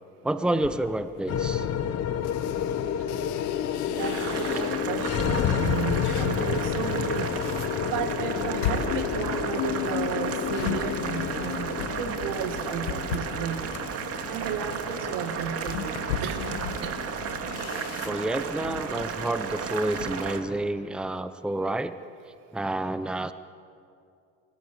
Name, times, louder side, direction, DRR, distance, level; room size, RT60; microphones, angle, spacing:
voice 1, 0.2-1.7 18.0-21.9 22.5-23.3, right 1 dB, 5° right, 11 dB, 0.9 m, -29 dB
sound 1, 0.5-5.0 5.5-20.2, left 8 dB, 90° left, 2.0 m, -38 dB
sound 2, 1.3-19.7, left 9 dB, 45° left, 1.3 m, -31 dB
voice 2, 3.9-7.4 7.8-13.6 14.3-17.0, right 8 dB, 75° right, 7 dB, 2.5 m, -33 dB
Boiling, 4.0-20.4, right 6 dB, 45° right, 2.4 m, -34 dB
29.5 x 17.0 x 8.8 m, 2.5 s
supercardioid pair, 100°, 33 cm